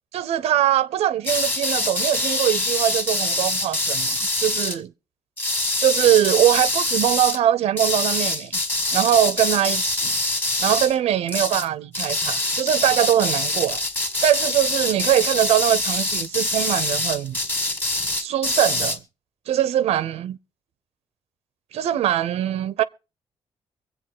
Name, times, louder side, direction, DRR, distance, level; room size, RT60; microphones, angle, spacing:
voice 1, 0.1-4.9 5.8-8.6 8.9-10.1 10.6-13.8 14.2-17.4 18.2-19.0 19.5-20.4 21.7-22.8, right 11 dB, 85° right, 0.6 m, -22 dB
sound 1, 1.2-4.8 5.4-7.4 7.8-11.0 11.3-11.7 11.9-19.0, left 2 dB, 20° left, 1.8 m, -24 dB
23.5 x 8.1 x 3.7 m
cardioid pair, 110°, 10 cm